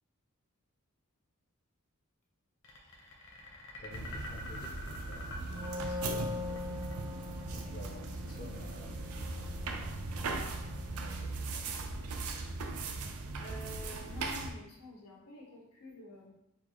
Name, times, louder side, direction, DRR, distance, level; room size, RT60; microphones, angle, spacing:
sound 1, 2.6-9.8, left 1 dB, 55° left, 0.8 m, -48 dB
voice 1, 3.8-5.2 5.5-6.7 7.5-10.6 10.9-11.7, left 2 dB, 40° left, -2 dB, 0.4 m, -51 dB
sound 2, 3.9-14.5, right 3 dB, 80° right, 0.4 m, -39 dB
Wind instrument woodwind instrument, 5.4-11.1, left 3 dB, 15° right, 0.4 m, -43 dB
voice 2, 12.7-13.1 13.4-16.3, left 1 dB, 85° left, -2 dB, 1.0 m, -49 dB
4.3 x 2.3 x 2.9 m, 0.85 s
head